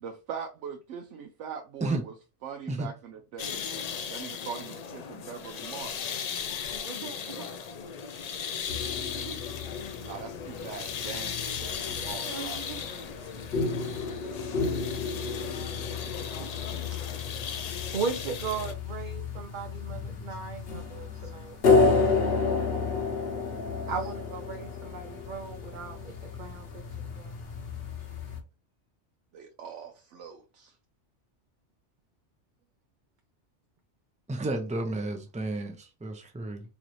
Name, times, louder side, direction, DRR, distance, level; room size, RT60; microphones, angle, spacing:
voice 1, 0.0-2.1 2.4-3.6 4.1-6.1 10.0-12.6 29.3-30.7, right 7 dB, 80° right, 0.9 m, -41 dB
sound 1, 3.4-18.7, left 7 dB, 75° left, 0.3 m, -37 dB
voice 2, 6.7-7.5 9.1-9.4 12.2-12.8 16.7-17.0 17.9-21.9 23.9-26.1 26.4-26.7 27.2-27.3, right 5 dB, 50° right, 0.6 m, -37 dB
sound 2, 8.7-28.4, left 4 dB, 55° left, 1.1 m, -31 dB
voice 3, 34.3-36.6, right 2 dB, 10° right, 0.5 m, -32 dB
3.9 x 3.1 x 3.0 m
omnidirectional pair, 1.2 m